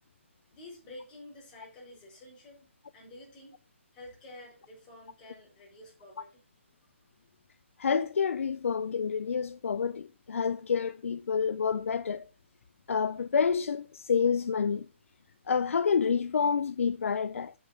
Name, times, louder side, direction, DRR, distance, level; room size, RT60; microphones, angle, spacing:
voice 1, 0.5-2.6 2.9-3.5 3.9-6.4, left 1 dB, 20° left, 4.4 m, -50 dB
voice 2, 7.8-12.3 12.9-14.9 15.5-17.5, left 6 dB, 85° left, 0.4 m, -28 dB
6.9 x 6.3 x 5.3 m
hypercardioid pair, 160°, 7 cm